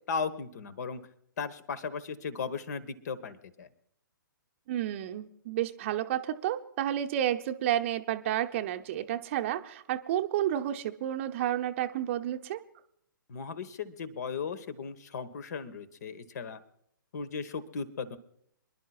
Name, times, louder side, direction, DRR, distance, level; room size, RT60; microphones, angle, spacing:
voice 1, 0.1-1.0 1.4-3.7 13.3-16.6 17.1-18.2, left 5 dB, 50° left, 15 dB, 1.3 m, -36 dB
voice 2, 4.7-12.6, right 11 dB, 35° right, 7 dB, 0.8 m, -31 dB
27.0 x 11.5 x 2.4 m, 0.70 s
figure-of-eight pair, 125°, 11 cm